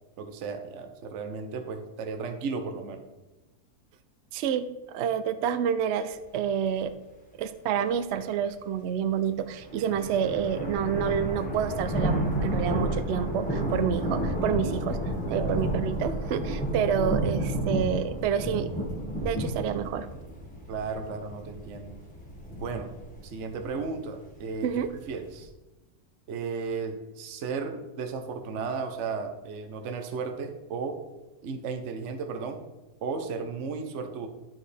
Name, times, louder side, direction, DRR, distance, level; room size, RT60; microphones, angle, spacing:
voice 1, 0.2-3.0 15.3-15.6 20.7-21.9 22.5-22.9 23.2-24.7 25.1-25.5 26.3-31.0 31.4-32.6 33.0-34.3, right 5 dB, 55° right, 6 dB, 0.9 m, -34 dB
voice 2, 4.3-6.9 7.4-15.0 15.3-18.7 19.2-20.1 24.6-24.9, right 8 dB, 80° right, 11 dB, 0.6 m, -28 dB
sound 1, 9.5-25.4, right 1 dB, 5° left, 1.3 m, -31 dB
12.0 x 4.8 x 3.3 m, 1.1 s
omnidirectional pair, 1.7 m